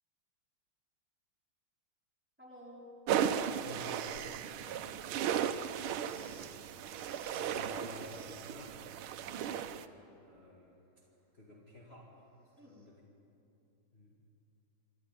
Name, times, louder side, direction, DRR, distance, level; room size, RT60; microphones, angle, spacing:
voice 1, 2.4-3.0 4.6-5.0 9.2-9.8 12.6-12.8, left 1 dB, 5° right, -4 dB, 3.7 m, -54 dB
sound 1, 3.1-9.9, right 9 dB, 85° right, 1.6 m, -36 dB
voice 2, 3.6-4.4 7.3-9.7 10.2-10.8 11.3-12.2 12.7-13.0 13.9-14.2, left 2 dB, 30° left, -4 dB, 2.3 m, -52 dB
sound 2, 6.0-8.5 12.6-12.9, right 2 dB, 40° right, 3.6 m, -60 dB
27.0 x 11.0 x 9.1 m, 2.8 s
omnidirectional pair, 2.3 m